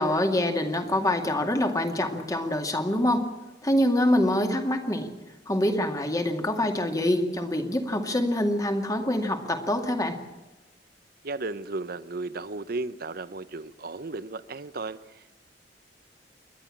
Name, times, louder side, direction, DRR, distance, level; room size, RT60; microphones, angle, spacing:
voice 1, 0.0-3.3 3.6-5.1 5.5-10.2, left 1 dB, 20° left, 5 dB, 2.1 m, -25 dB
voice 2, 11.2-15.3, right 3 dB, 60° right, 13 dB, 0.9 m, -35 dB
28.5 x 11.5 x 8.7 m, 1.1 s
head